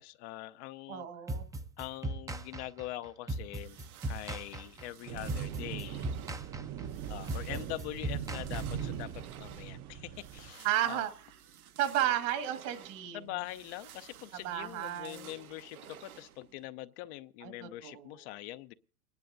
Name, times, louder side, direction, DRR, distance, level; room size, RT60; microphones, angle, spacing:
voice 1, 0.0-1.1 1.8-3.8 4.1-6.1 7.1-11.0 13.1-18.7, left 16 dB, 50° left, 0.7 m, -43 dB
voice 2, 0.9-1.5 10.6-11.3 11.8-13.2 14.4-15.3 17.4-18.1, right 12 dB, 60° right, 1.9 m, -33 dB
sound 1, 1.3-9.1, right 2 dB, 10° right, 0.6 m, -38 dB
sound 2, 3.5-16.7, right 10 dB, 75° right, 1.3 m, -54 dB
sound 3, 5.1-10.5, right 9 dB, 35° right, 0.8 m, -40 dB
29.0 x 10.5 x 2.6 m
hypercardioid pair, 100°, 43 cm